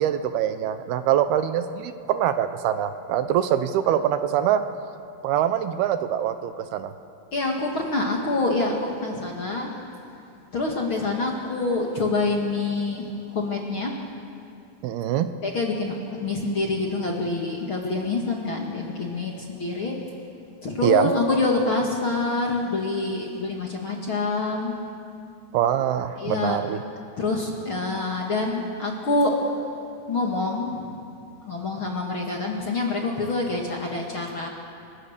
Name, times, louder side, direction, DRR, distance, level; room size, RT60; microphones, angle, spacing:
voice 1, 0.0-4.6 5.2-6.9 14.8-15.3 20.8-21.1 25.5-26.8, right 10 dB, 80° right, 10 dB, 2.7 m, -23 dB
voice 2, 7.3-9.7 10.5-13.9 15.4-20.0 20.6-24.7 26.2-26.6 27.2-29.4 30.1-30.9 31.4-34.5, left 3 dB, 40° left, 0 dB, 2.1 m, -26 dB
28.0 x 23.0 x 6.7 m, 2.5 s
omnidirectional pair, 4.8 m